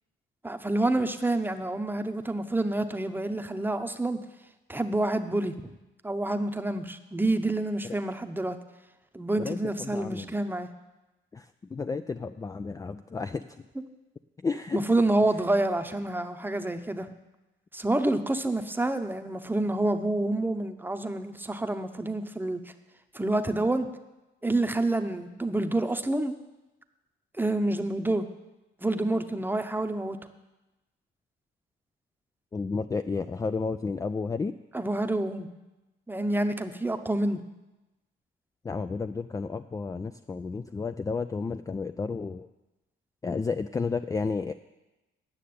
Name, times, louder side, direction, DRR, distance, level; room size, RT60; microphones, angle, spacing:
voice 1, 0.4-4.2 4.7-5.7 6.0-8.6 9.1-10.7 14.7-17.1 17.7-22.6 23.1-23.9 24.4-26.3 27.4-28.3 28.8-30.2 34.7-35.5 36.1-37.4, right 2 dB, 10° right, 8 dB, 0.8 m, -28 dB
voice 2, 9.4-10.3 11.3-13.6 14.4-14.8 32.5-34.5 38.6-42.5 43.2-44.5, left 4 dB, 15° left, 10 dB, 0.3 m, -32 dB
9.6 x 6.5 x 8.5 m, 1.0 s
cardioid pair, 90°, 20 cm